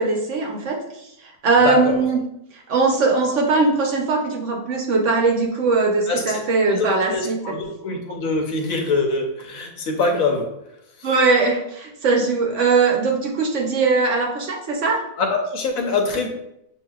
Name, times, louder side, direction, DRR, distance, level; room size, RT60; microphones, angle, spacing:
voice 1, 0.0-2.2 2.5-7.6 11.0-15.0, right 3 dB, 60° right, 0 dB, 1.0 m, -20 dB
voice 2, 1.6-2.0 6.1-6.4 6.7-10.5 15.2-16.3, left 3 dB, 65° left, 2 dB, 1.2 m, -23 dB
7.0 x 2.7 x 2.3 m, 0.80 s
omnidirectional pair, 1.7 m